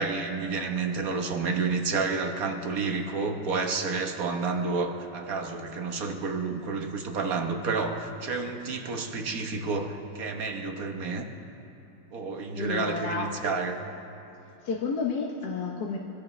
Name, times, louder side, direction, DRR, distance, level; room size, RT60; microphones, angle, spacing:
voice 1, 0.0-11.3 12.1-13.8, right 4 dB, 55° right, 4 dB, 1.5 m, -30 dB
voice 2, 12.5-13.3 14.6-16.0, left 4 dB, 65° left, -2 dB, 1.6 m, -30 dB
25.0 x 16.0 x 3.3 m, 2.9 s
omnidirectional pair, 2.0 m